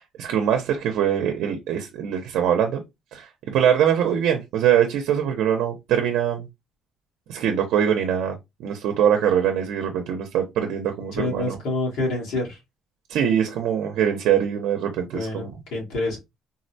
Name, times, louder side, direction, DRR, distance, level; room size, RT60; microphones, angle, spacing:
voice 1, 0.0-2.8 3.1-6.5 7.3-11.6 13.1-15.5, right 9 dB, 80° right, 0.6 m, -23 dB
voice 2, 11.1-12.6 15.1-16.2, left 2 dB, 85° left, 1.7 m, -27 dB
3.8 x 2.1 x 2.6 m
cardioid pair, 150°, 0 cm